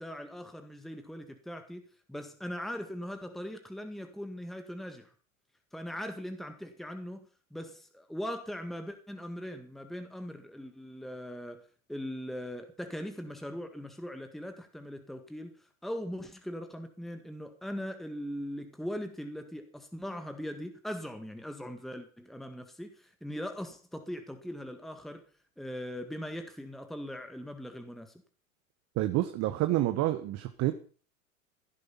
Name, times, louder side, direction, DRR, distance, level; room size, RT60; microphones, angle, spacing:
voice 1, 0.0-5.1 5.7-25.2 25.6-28.1, equal, ahead, 7 dB, 1.9 m, -40 dB
voice 2, 28.9-30.7, right 15 dB, 40° right, 9 dB, 1.5 m, -28 dB
16.5 x 10.5 x 5.8 m, 0.41 s
hypercardioid pair, 100°, 42 cm